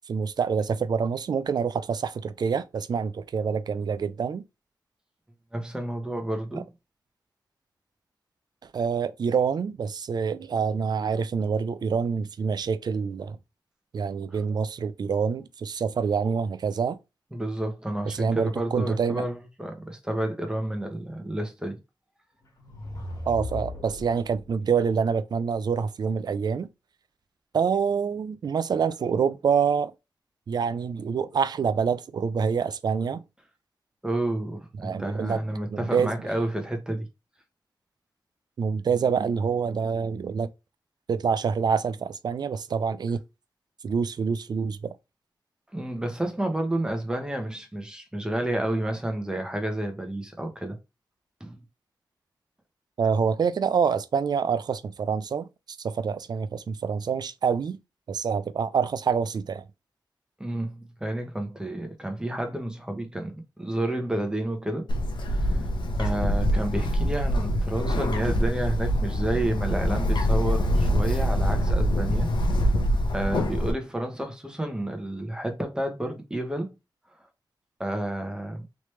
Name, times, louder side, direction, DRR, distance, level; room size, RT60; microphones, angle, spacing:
voice 1, 0.1-4.4 8.7-13.4 13.9-17.0 18.1-19.2 23.3-26.7 27.5-29.9 30.5-33.2 34.8-35.4 35.7-36.1 38.6-40.5 41.1-43.2 43.8-44.9 53.0-55.5 55.8-57.8 58.1-59.6, right 6 dB, 60° right, 0.4 m, -26 dB
voice 2, 5.5-6.6 14.3-14.4 17.3-21.8 34.0-37.1 45.7-50.8 51.4-51.6 60.4-64.9 65.3-65.7 66.0-72.3 73.1-76.7 77.8-78.6, right 1 dB, 10° right, 1.0 m, -30 dB
sound 1, 22.4-24.5, left 2 dB, 55° left, 1.5 m, -37 dB
Bird, 64.9-73.7, equal, 80° left, 0.7 m, -24 dB
3.2 x 2.9 x 3.2 m
wide cardioid pair, 80°, 8 cm